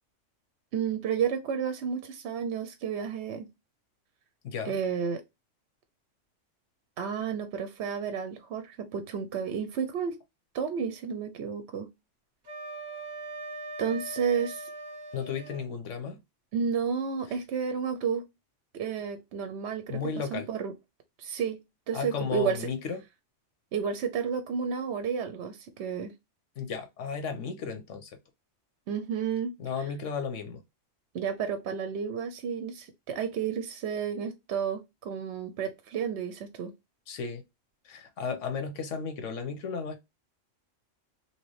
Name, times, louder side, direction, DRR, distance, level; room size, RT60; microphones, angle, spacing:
voice 1, 0.7-3.5 4.6-5.2 7.0-10.2 10.5-11.9 13.8-14.7 16.5-18.3 18.7-20.7 21.2-21.6 21.9-22.7 23.7-26.1 28.9-29.6 31.1-36.7, right 7 dB, 65° right, 0.8 m, -31 dB
voice 2, 4.4-4.8 15.1-16.2 19.9-20.5 21.9-23.0 26.6-28.2 29.6-30.6 37.1-37.4 37.8-40.0, left 6 dB, 75° left, 1.1 m, -34 dB
Wind instrument woodwind instrument, 12.4-15.6, right 2 dB, 40° right, 0.9 m, -40 dB
3.0 x 2.9 x 3.0 m
omnidirectional pair, 1.3 m